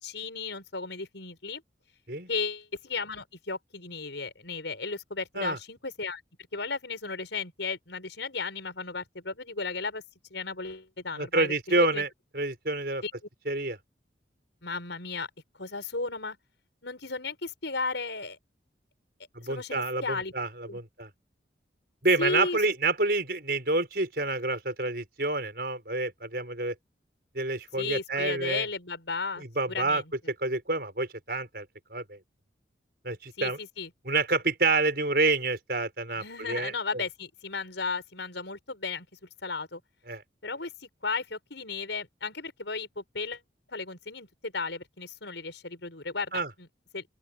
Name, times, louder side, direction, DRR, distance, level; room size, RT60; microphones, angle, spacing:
voice 1, 0.0-1.6 2.3-6.2 6.5-10.0 10.3-12.0 13.0-13.1 14.6-15.3 15.5-16.4 16.8-18.4 19.5-20.3 20.7-20.8 22.2-22.6 27.8-30.1 33.4-33.9 36.2-39.1 39.4-39.8 40.4-43.4 43.7-46.7 46.9-47.0, left 4 dB, 80° left, 5.4 m, -35 dB
voice 2, 11.1-12.1 12.3-13.0 13.5-13.8 19.3-21.1 22.0-26.7 27.3-28.7 29.4-30.0 30.4-31.7 31.9-32.2 33.0-33.6 34.0-37.0 40.1-40.2 46.3-46.5, right 3 dB, 55° right, 6.2 m, -28 dB
open air
head